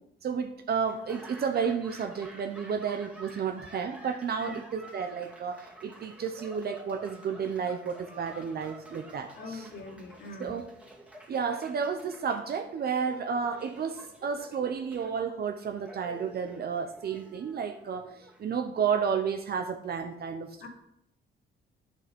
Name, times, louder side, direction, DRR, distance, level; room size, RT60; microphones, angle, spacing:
voice 1, 0.2-9.7 10.4-10.7 11.3-20.7, right 6 dB, 55° right, 6 dB, 0.8 m, -32 dB
Laughter / Applause, 0.8-18.9, right 1 dB, 5° right, 2.0 m, -50 dB
voice 2, 9.3-10.5 20.6-20.7, left 3 dB, 65° left, -4 dB, 3.0 m, -42 dB
8.6 x 6.9 x 5.3 m, 0.78 s
cardioid pair, 90°, 20 cm